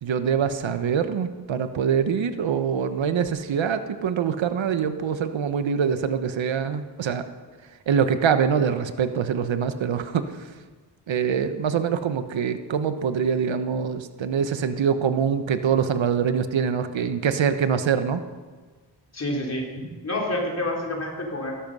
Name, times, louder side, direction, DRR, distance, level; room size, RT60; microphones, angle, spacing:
voice 1, 0.0-7.2 7.9-10.5 11.1-18.2, right 7 dB, 85° right, 10 dB, 1.1 m, -24 dB
voice 2, 19.1-21.5, left 1 dB, 35° left, -1 dB, 3.9 m, -29 dB
17.0 x 13.0 x 5.5 m, 1.4 s
wide cardioid pair, 125°, 45 cm